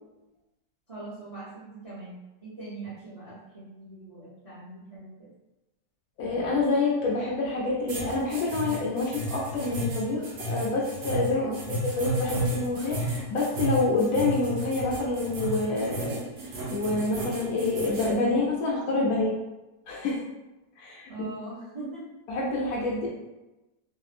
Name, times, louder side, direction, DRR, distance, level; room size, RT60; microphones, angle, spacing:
voice 1, 0.9-2.1 2.4-5.3 11.4-11.7 21.1-22.0, right 3 dB, 40° right, -10 dB, 0.5 m, -41 dB
voice 2, 6.2-16.2 16.7-19.4 19.9-20.2 20.8-21.1 22.3-23.1, left 3 dB, 70° left, -3 dB, 1.0 m, -27 dB
sound 1, 7.9-18.1, right 2 dB, 65° right, 0.8 m, -32 dB
2.8 x 2.5 x 2.4 m, 1.0 s
omnidirectional pair, 1.8 m